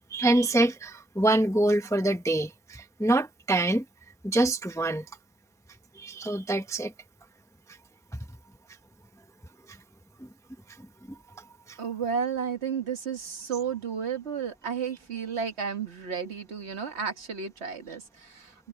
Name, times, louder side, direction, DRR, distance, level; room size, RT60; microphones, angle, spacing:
voice 1, 0.1-3.8 4.2-5.0 6.0-6.9 11.7-11.8, right 1 dB, 5° left, 0.8 m, -25 dB
voice 2, 11.8-18.7, right 6 dB, 60° right, 1.7 m, -32 dB
omnidirectional pair, 1.3 m